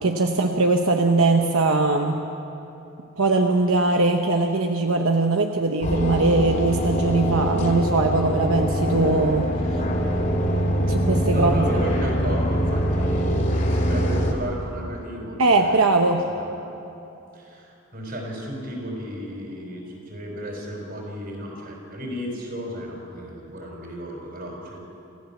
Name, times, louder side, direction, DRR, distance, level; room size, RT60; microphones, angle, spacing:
voice 1, 0.0-2.2 3.2-9.5 10.9-11.6 15.4-16.3, right 3 dB, 85° right, 3 dB, 1.0 m, -21 dB
sound 1, 5.8-14.3, equal, 40° left, 3.1 m, -23 dB
voice 2, 11.3-15.9 16.4-16.5 17.3-24.8, equal, 45° right, 0 dB, 5.0 m, -33 dB
27.5 x 15.0 x 7.2 m, 2.9 s
head